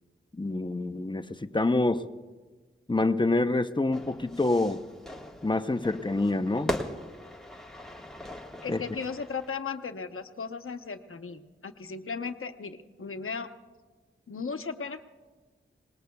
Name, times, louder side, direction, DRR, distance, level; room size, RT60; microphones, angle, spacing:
voice 1, 0.3-2.0 2.9-4.8 5.4-6.7 8.7-8.8, left 2 dB, 20° left, 9 dB, 0.7 m, -26 dB
Fire / Fireworks, 3.9-9.5, equal, ahead, 1.5 m, -39 dB
voice 2, 8.6-13.5 14.3-15.0, left 5 dB, 85° left, 7 dB, 0.9 m, -36 dB
27.0 x 19.5 x 2.3 m, 1.3 s
wide cardioid pair, 75°, 21 cm